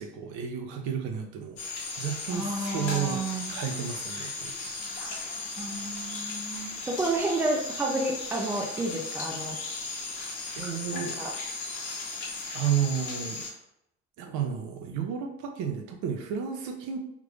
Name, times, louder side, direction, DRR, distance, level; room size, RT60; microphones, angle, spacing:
voice 1, 0.0-3.2 3.5-4.7 9.5-9.6 10.0-10.1 10.5-11.2 12.5-13.4 14.2-17.0, right 8 dB, 85° right, 4 dB, 0.7 m, -32 dB
sound 1, 1.6-13.5, left 3 dB, 85° left, 1.1 m, -36 dB
voice 2, 2.3-3.5 5.6-9.6 10.9-11.3, right 2 dB, 5° right, 0 dB, 0.3 m, -31 dB
3.6 x 2.4 x 3.2 m, 0.80 s
cardioid pair, 165°, 29 cm